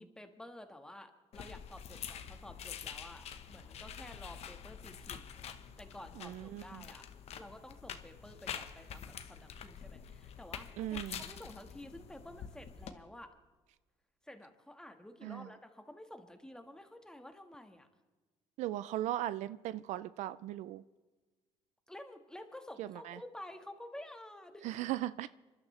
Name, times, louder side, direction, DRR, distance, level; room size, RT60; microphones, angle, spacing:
voice 1, 0.0-5.3 5.8-7.0 7.3-13.3 14.2-17.9 21.9-24.7, left 1 dB, 5° left, 1.5 m, -51 dB
sound 1, 1.3-12.9, left 8 dB, 60° left, 1.1 m, -47 dB
voice 2, 6.2-6.8 10.8-11.2 15.2-15.5 18.6-20.8 22.8-23.2 24.6-25.3, right 14 dB, 75° right, 0.4 m, -38 dB
27.0 x 12.0 x 3.3 m
cardioid pair, 100°, 12 cm